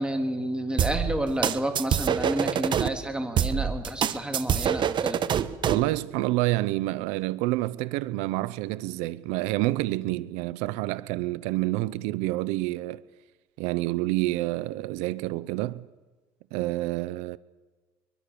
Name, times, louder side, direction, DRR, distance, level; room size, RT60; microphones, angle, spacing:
voice 1, 0.0-5.2, right 1 dB, 10° right, 3.4 m, -30 dB
sound 1, 0.8-2.9 3.4-5.9, right 9 dB, 45° right, 1.3 m, -25 dB
voice 2, 5.6-13.0 13.6-15.9 16.5-17.4, right 18 dB, 80° right, 0.7 m, -28 dB
23.5 x 23.0 x 6.9 m
supercardioid pair, 105°, 11 cm